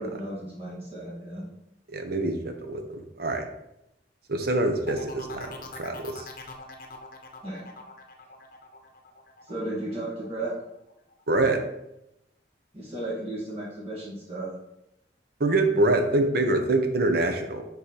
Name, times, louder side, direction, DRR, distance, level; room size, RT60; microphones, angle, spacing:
voice 1, 0.0-1.5 7.4-7.6 9.5-10.6 12.7-14.5, right 1 dB, 35° right, -6 dB, 1.6 m, -34 dB
voice 2, 1.9-3.4 4.3-5.5 5.8-6.3 11.3-11.6 15.4-17.6, right 2 dB, 60° right, 5 dB, 0.9 m, -25 dB
sound 1, 4.9-10.5 10.9-11.3, left 3 dB, 55° left, 0.8 m, -43 dB
5.5 x 3.9 x 4.9 m, 0.85 s
head